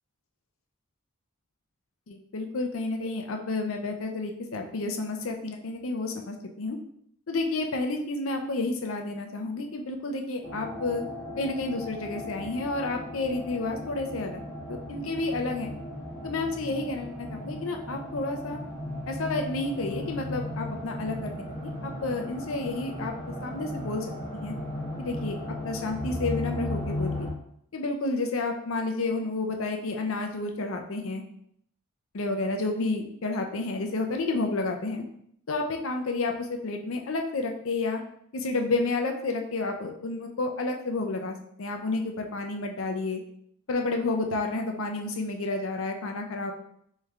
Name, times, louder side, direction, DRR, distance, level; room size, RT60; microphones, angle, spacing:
voice 1, 2.1-6.8 7.3-11.0 11.4-14.4 14.9-15.7 16.2-18.6 19.1-24.1 24.3-24.5 25.0-25.4 25.6-27.3 27.7-31.2 32.1-35.0 35.5-38.0 38.3-43.2 43.7-46.5, left 3 dB, 65° left, 3 dB, 0.6 m, -30 dB
sound 1, 10.4-27.3, left 1 dB, 20° left, 1.1 m, -36 dB
3.2 x 3.2 x 3.6 m, 0.70 s
head